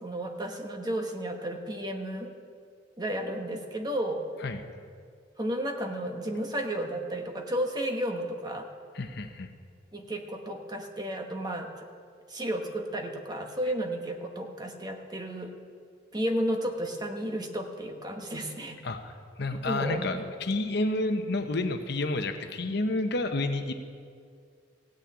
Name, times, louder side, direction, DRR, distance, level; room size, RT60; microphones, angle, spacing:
voice 1, 0.0-2.3 3.0-4.2 5.4-8.7 9.9-11.7 12.3-15.5 16.1-18.8 19.6-20.2, right 1 dB, 20° right, 3 dB, 1.1 m, -32 dB
voice 2, 8.9-9.5 18.8-23.7, left 2 dB, 60° left, 7 dB, 0.9 m, -30 dB
16.5 x 6.5 x 8.6 m, 2.1 s
head